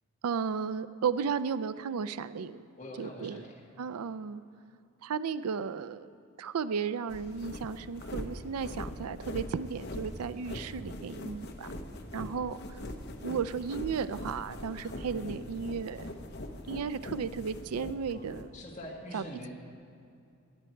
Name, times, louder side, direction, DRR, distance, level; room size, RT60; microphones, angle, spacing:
voice 1, 0.2-2.7 3.0-3.5 3.8-4.4 5.0-6.1 6.4-11.7 12.1-12.8 13.2-16.1 16.7-18.5 19.1-19.2, right 6 dB, 90° right, 15 dB, 0.4 m, -34 dB
voice 2, 2.8-3.7 15.1-15.5 18.1-18.3 18.5-19.5, equal, 30° left, -2 dB, 1.9 m, -44 dB
sound 1, 7.1-18.5, left 1 dB, 50° left, 0.9 m, -42 dB
17.5 x 11.0 x 4.5 m, 2.6 s
head